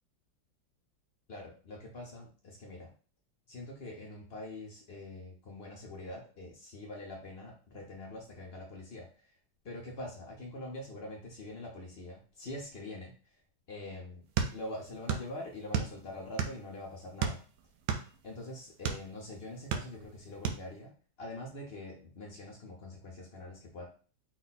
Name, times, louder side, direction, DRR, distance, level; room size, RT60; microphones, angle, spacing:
voice 1, 1.3-2.9 3.5-9.3 9.6-13.1 13.7-14.2 14.5-17.4 18.2-20.9 21.2-23.9, left 1 dB, 65° left, -1 dB, 0.6 m, -44 dB
sound 1, 14.4-15.3 15.6-16.7 17.2-19.1 19.5-20.1 20.4-20.6, right 7 dB, 75° right, 0.8 m, -32 dB
4.9 x 2.3 x 4.1 m, 0.38 s
omnidirectional pair, 2.2 m